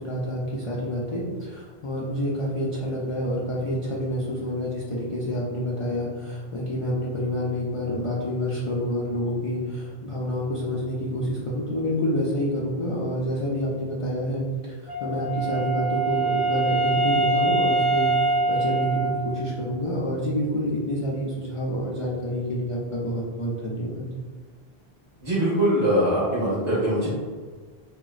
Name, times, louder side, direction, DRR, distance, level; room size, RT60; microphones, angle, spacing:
voice 1, 0.0-24.1, equal, 55° left, -6 dB, 0.4 m, -28 dB
Wind instrument woodwind instrument, 14.9-19.7, right 2 dB, 20° left, 0.9 m, -24 dB
voice 2, 25.2-27.1, right 1 dB, 30° right, -10 dB, 1.1 m, -22 dB
3.9 x 2.1 x 2.3 m, 1.5 s
omnidirectional pair, 1.0 m